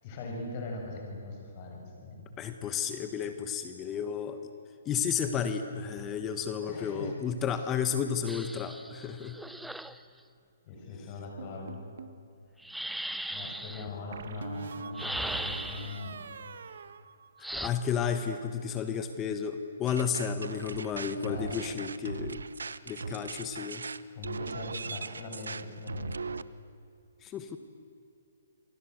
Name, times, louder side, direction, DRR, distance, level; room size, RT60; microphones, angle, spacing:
voice 1, 0.0-2.3 6.6-7.2 7.5-7.7 10.6-11.8 13.3-16.2 20.6-20.9 21.3-21.7 24.1-26.2, left 3 dB, 35° left, 0 dB, 7.4 m, -41 dB
voice 2, 2.4-4.4 4.8-9.4 17.4-22.4 22.9-23.9 27.2-27.6, left 7 dB, 20° left, 8 dB, 1.4 m, -32 dB
sound 1, 8.3-10.0 12.6-13.9 15.0-16.0 17.4-17.7, right 1 dB, ahead, 0.7 m, -38 dB
sound 2, 11.4-12.2 14.1-17.6 17.9-18.4, right 5 dB, 70° right, 1.4 m, -44 dB
sound 3, 19.9-26.4, right 4 dB, 85° right, 0.9 m, -39 dB
28.0 x 23.5 x 8.0 m, 2.6 s
hypercardioid pair, 145°, 0 cm